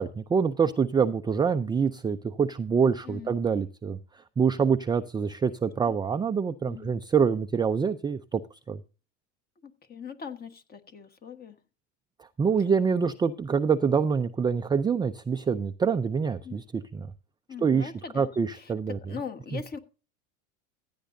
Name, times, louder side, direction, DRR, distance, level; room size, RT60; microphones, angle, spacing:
voice 1, 0.0-4.0 4.4-8.4 8.7-8.8 12.4-16.6 16.9-17.1 17.6-19.0, right 6 dB, 10° right, 7 dB, 0.4 m, -25 dB
voice 2, 3.0-3.4 5.9-6.0 6.7-6.9 9.6-11.6 16.4-16.6 17.5-19.8, left 6 dB, 25° left, 8 dB, 1.5 m, -41 dB
15.5 x 9.3 x 2.7 m, 0.33 s
supercardioid pair, 110°, 35 cm